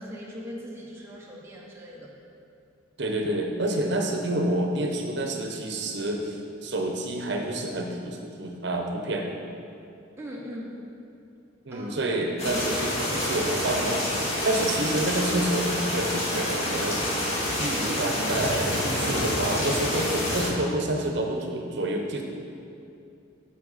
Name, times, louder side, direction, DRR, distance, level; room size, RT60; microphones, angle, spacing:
voice 1, 0.0-2.1 10.2-10.8 11.7-12.0 12.4-12.6, equal, 10° right, -5 dB, 0.8 m, -39 dB
voice 2, 3.0-6.4 6.6-9.3 11.7-14.1 14.4-17.0 17.5-22.2, right 1 dB, 60° right, 3 dB, 0.8 m, -28 dB
sound 1, 12.4-20.5, left 1 dB, 35° left, 1.7 m, -28 dB
7.7 x 5.9 x 4.1 m, 2.6 s
head